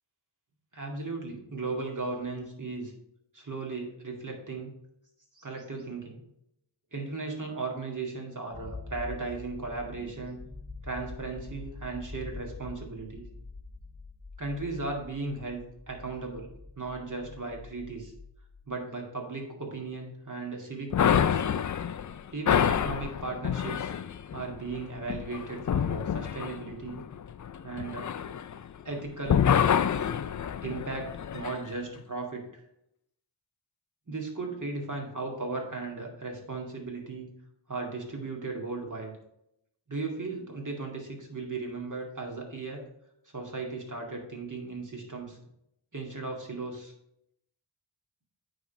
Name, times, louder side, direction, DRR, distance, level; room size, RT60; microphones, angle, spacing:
voice 1, 0.7-2.9 3.5-4.7 5.3-6.2 6.9-10.4 10.8-13.3 14.4-16.5 16.7-18.1 18.7-21.4 22.3-23.9 24.3-27.0 27.6-28.1 28.8-29.5 30.6-32.6 34.1-37.3 37.7-39.2 39.9-42.8 43.2-45.4 45.9-46.9, right 3 dB, 40° right, 0 dB, 2.3 m, -36 dB
sound 1, 8.5-18.6, left 3 dB, 10° left, 0.8 m, -45 dB
sound 2, 20.9-28.9 29.2-31.6, left 8 dB, 45° left, 0.4 m, -28 dB
8.9 x 3.8 x 5.3 m, 0.77 s
cardioid pair, 45°, 45 cm